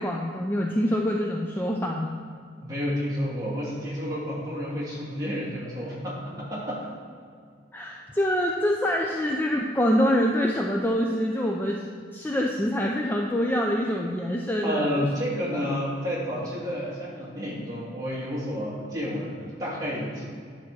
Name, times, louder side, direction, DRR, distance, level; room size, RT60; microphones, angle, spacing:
voice 1, 0.0-2.2 7.7-11.8 12.1-15.1 15.5-15.7, equal, 10° left, 0 dB, 0.4 m, -25 dB
voice 2, 2.6-6.8 14.6-20.2, equal, 20° right, -7 dB, 2.1 m, -30 dB
9.7 x 3.6 x 6.1 m, 2.2 s
head